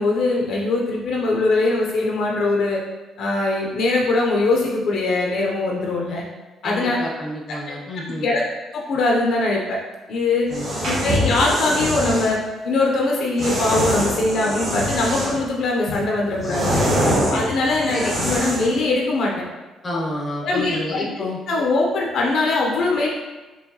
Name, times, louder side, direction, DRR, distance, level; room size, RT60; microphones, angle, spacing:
voice 1, 0.0-2.8 3.2-6.2 6.6-7.0 7.7-7.8 8.2-8.4 8.7-9.8 10.1-10.5 10.9-12.4 12.6-16.9 17.3-19.4 20.4-21.0 21.5-23.1, left 2 dB, 60° left, -2 dB, 0.6 m, -21 dB
voice 2, 6.6-8.3 10.5-10.7 17.0-17.4 17.9-18.1 19.8-21.4, left 1 dB, 25° left, -2 dB, 0.8 m, -29 dB
sound 1, 10.4-12.3 13.4-15.5 15.9-18.8, equal, 40° right, 1.3 m, -24 dB
4.5 x 3.0 x 2.9 m, 1.2 s
cardioid pair, 135°, 0 cm